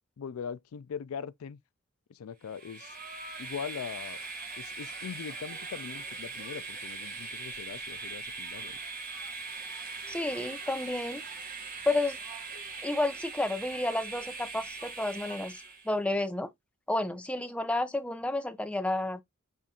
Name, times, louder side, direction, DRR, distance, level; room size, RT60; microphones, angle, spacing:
voice 1, 0.2-1.6 2.1-3.0 3.4-4.2 4.6-8.8, left 7 dB, 85° left, 0.4 m, -41 dB
Train, 2.5-15.9, right 4 dB, 40° right, 0.9 m, -41 dB
voice 2, 10.1-11.2 11.9-12.2 12.8-16.5 16.9-19.2, left 2 dB, 5° left, 0.5 m, -31 dB
5.6 x 2.5 x 3.6 m
head